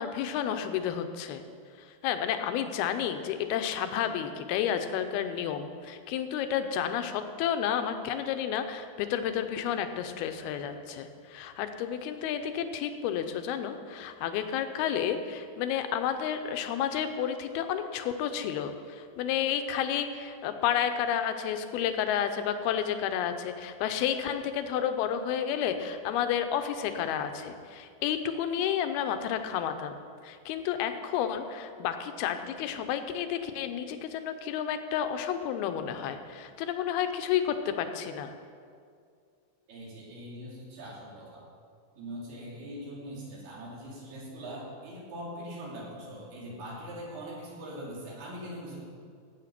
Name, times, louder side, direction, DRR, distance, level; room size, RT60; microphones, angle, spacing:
voice 1, 0.0-1.4 1.8-30.0 30.2-38.3, left 9 dB, 85° left, 8 dB, 2.7 m, -31 dB
voice 2, 39.7-41.4 42.0-48.8, equal, 80° right, -4 dB, 4.8 m, -42 dB
16.0 x 8.4 x 6.0 m, 2.2 s
omnidirectional pair, 4.4 m